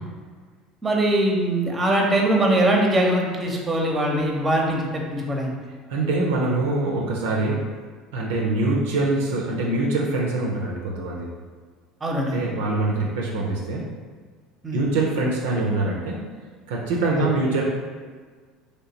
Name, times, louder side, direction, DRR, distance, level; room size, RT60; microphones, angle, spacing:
voice 1, 0.8-5.5 12.0-12.4 14.6-14.8 17.1-17.2, right 1 dB, 20° right, 0 dB, 0.7 m, -22 dB
voice 2, 5.9-7.7 8.1-11.3 12.3-13.9 14.7-16.2 16.7-17.7, right 2 dB, 70° right, -2 dB, 0.4 m, -24 dB
3.1 x 2.9 x 2.8 m, 1.5 s
figure-of-eight pair, 65°, 0 cm